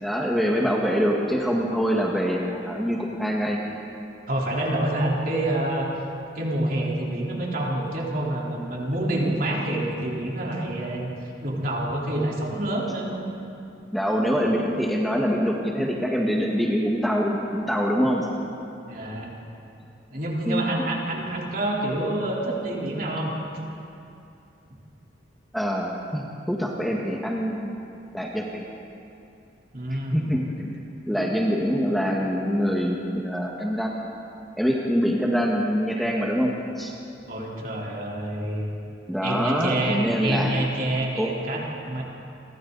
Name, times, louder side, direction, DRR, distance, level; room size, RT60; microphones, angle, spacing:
voice 1, 0.0-3.6 13.9-18.3 20.4-20.8 25.5-27.8 28.1-28.7 29.9-30.7 31.1-33.9 34.6-36.9 39.1-40.5 41.2-41.3, equal, ahead, -2 dB, 1.7 m, -25 dB
voice 2, 4.3-5.9 6.3-11.1 11.4-13.2 18.9-19.3 20.1-23.3 29.7-30.3 37.2-38.6 39.2-42.0, right 1 dB, 50° right, -3 dB, 3.9 m, -27 dB
30.0 x 24.0 x 4.1 m, 2.7 s
head